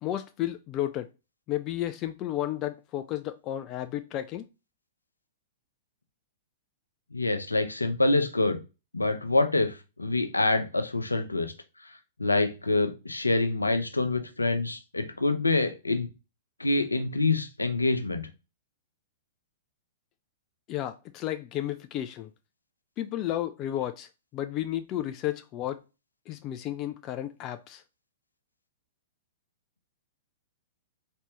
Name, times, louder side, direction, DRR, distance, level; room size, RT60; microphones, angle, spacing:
voice 1, 0.0-1.1 1.5-4.5 20.7-22.3 23.0-25.8 26.3-27.8, left 13 dB, 30° left, 0.3 m, -32 dB
voice 2, 7.1-8.6 8.9-9.7 10.0-11.5 12.2-16.1 16.6-18.3, left 2 dB, 80° left, 0.7 m, -26 dB
4.2 x 3.3 x 2.8 m
figure-of-eight pair, 105°, 0 cm